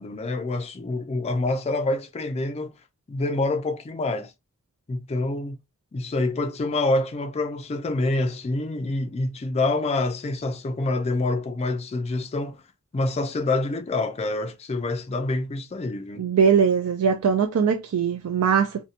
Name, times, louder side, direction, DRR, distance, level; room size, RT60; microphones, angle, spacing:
voice 1, 0.0-2.7 3.1-4.3 4.9-5.6 5.9-12.6 12.9-16.3, left 2 dB, 30° left, 0.3 m, -26 dB
voice 2, 16.2-18.8, right 6 dB, 70° right, 0.4 m, -21 dB
2.7 x 2.1 x 2.4 m
head